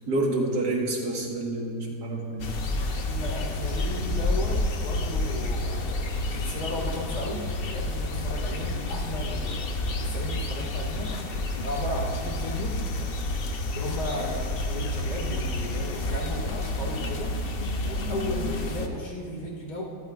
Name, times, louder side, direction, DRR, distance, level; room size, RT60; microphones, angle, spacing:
voice 1, 0.1-2.6, right 2 dB, 90° right, 0 dB, 2.1 m, -28 dB
sound 1, 2.4-18.9, left 2 dB, 50° left, 0.7 m, -29 dB
voice 2, 3.1-6.0 6.3-9.7 10.0-11.1 11.6-12.8 13.8-17.3 17.8-19.8, left 1 dB, 75° left, -4 dB, 2.5 m, -35 dB
24.0 x 9.0 x 2.4 m, 2.3 s
omnidirectional pair, 1.7 m